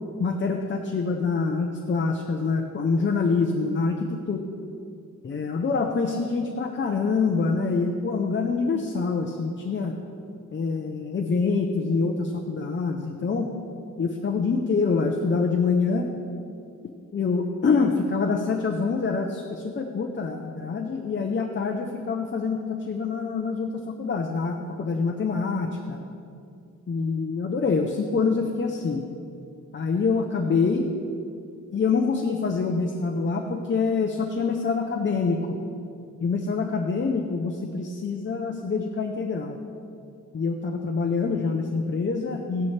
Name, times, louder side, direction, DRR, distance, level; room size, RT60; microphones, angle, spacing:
voice 1, 0.2-4.4 5.2-10.0 10.5-13.5 14.0-16.1 17.1-26.0 26.9-29.0 29.7-30.9 31.7-35.6 36.2-39.6 40.3-42.7, left 4 dB, 35° left, 3 dB, 0.7 m, -25 dB
15.5 x 11.5 x 3.3 m, 2.5 s
wide cardioid pair, 165°, 31 cm